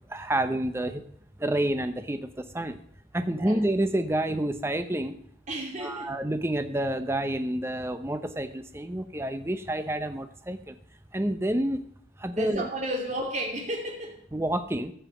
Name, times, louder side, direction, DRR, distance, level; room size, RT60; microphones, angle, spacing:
voice 1, 0.1-1.0 1.4-2.8 3.1-5.2 5.8-10.8 11.1-11.8 12.2-12.7 14.3-14.9, right 1 dB, 15° right, 9 dB, 0.7 m, -29 dB
voice 2, 5.5-6.1 12.3-14.2, right 1 dB, 35° right, 1 dB, 2.8 m, -33 dB
14.0 x 5.7 x 7.8 m, 0.63 s
head